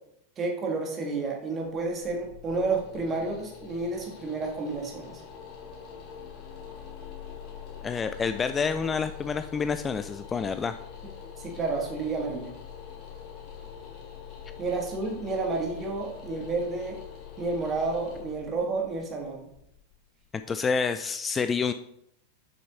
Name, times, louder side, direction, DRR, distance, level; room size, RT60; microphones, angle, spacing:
voice 1, 0.4-5.2 11.4-12.5 14.6-17.0 17.4-19.5, right 3 dB, 25° right, 1 dB, 1.9 m, -30 dB
sound 1, 1.8-20.6, left 7 dB, 40° left, 2.6 m, -44 dB
voice 2, 7.8-10.8 20.5-21.7, left 5 dB, 20° left, 10 dB, 0.3 m, -28 dB
6.8 x 6.2 x 4.1 m, 0.74 s
figure-of-eight pair, 90°, 0 cm